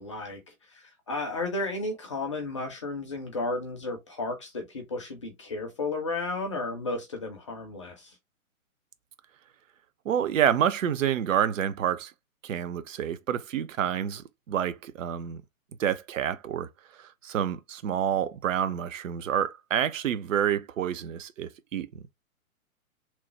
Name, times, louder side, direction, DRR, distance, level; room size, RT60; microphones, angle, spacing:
voice 1, 0.0-8.1, left 2 dB, 25° left, 0.4 m, -33 dB
voice 2, 10.1-12.1 12.4-15.4 15.8-16.7 17.0-22.0, right 9 dB, 65° right, 0.5 m, -28 dB
3.0 x 2.0 x 4.1 m
figure-of-eight pair, 120°, 42 cm